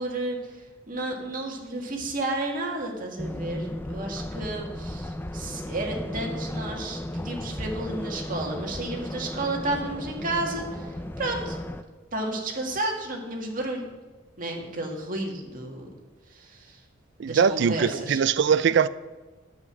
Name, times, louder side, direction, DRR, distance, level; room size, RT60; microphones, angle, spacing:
voice 1, 0.0-11.6 12.1-13.9 14.4-15.9 16.3-16.8 17.2-18.2, right 2 dB, 45° right, 1 dB, 1.9 m, -32 dB
sound 1, 3.2-11.8, left 1 dB, 10° left, 0.5 m, -35 dB
voice 2, 17.2-18.9, right 6 dB, 60° right, 15 dB, 0.4 m, -21 dB
9.5 x 7.9 x 5.9 m, 1.2 s
head